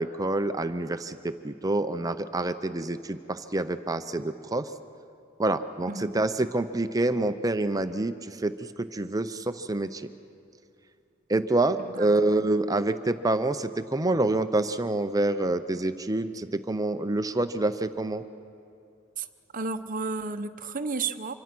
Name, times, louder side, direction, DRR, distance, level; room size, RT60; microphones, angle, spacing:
voice 1, 0.0-4.7 5.4-8.5 8.8-10.1 11.3-18.2, right 2 dB, 15° right, 10 dB, 0.6 m, -27 dB
voice 2, 19.5-21.3, right 4 dB, 40° right, 8 dB, 0.9 m, -32 dB
25.5 x 24.5 x 6.1 m, 2.5 s
head